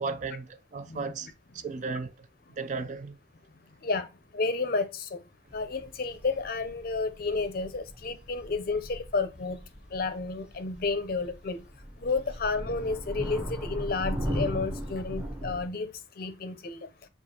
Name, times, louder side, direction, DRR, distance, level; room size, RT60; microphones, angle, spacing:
voice 1, 0.0-2.3 2.6-3.2, right 4 dB, 40° right, 0.3 m, -35 dB
voice 2, 3.8-5.2 5.5-9.6 9.9-11.6 12.0-16.9, left 3 dB, 50° left, 0.5 m, -31 dB
sound 1, 5.5-15.7, equal, 5° right, 0.8 m, -38 dB
6.7 x 2.3 x 2.8 m
head